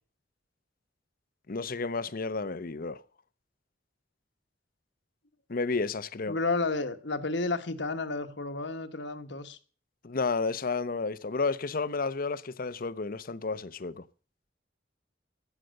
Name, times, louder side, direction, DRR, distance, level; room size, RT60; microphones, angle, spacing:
voice 1, 1.5-3.0 5.5-6.4 10.0-14.0, left 4 dB, 50° left, 0.8 m, -31 dB
voice 2, 6.3-9.6, left 3 dB, 70° left, 1.4 m, -31 dB
14.5 x 9.2 x 6.5 m
head